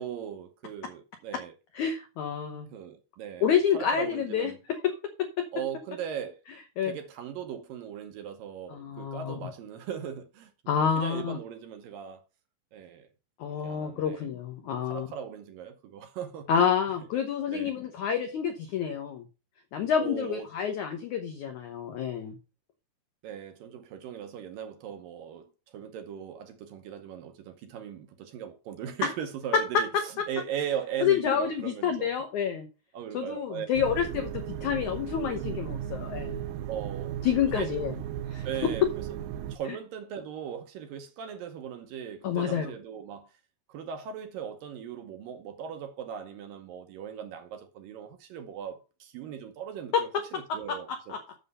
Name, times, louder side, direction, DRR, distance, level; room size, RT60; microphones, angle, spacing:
voice 1, 0.0-1.5 2.7-3.5 3.7-4.6 5.5-6.4 6.8-10.5 10.9-12.2 12.7-13.1 13.6-14.3 14.9-16.5 17.5-17.7 20.0-20.5 23.2-32.2 32.9-33.7 36.7-37.2 37.5-37.7 38.4-38.9 39.5-43.3 43.7-51.1, right 8 dB, 70° right, 2.3 m, -38 dB
voice 2, 1.7-2.7 3.4-4.9 5.2-5.5 6.8-7.0 8.7-9.3 10.7-11.4 13.4-15.1 16.5-19.2 19.7-22.4 29.7-29.8 30.2-30.3 31.0-32.7 33.1-36.5 37.2-37.9 38.3-38.5 42.2-42.7 49.9-50.0 50.7-51.2, left 7 dB, 85° left, 1.6 m, -28 dB
sound 1, 33.7-39.6, right 11 dB, 90° right, 2.0 m, -36 dB
7.9 x 7.0 x 5.4 m
omnidirectional pair, 4.9 m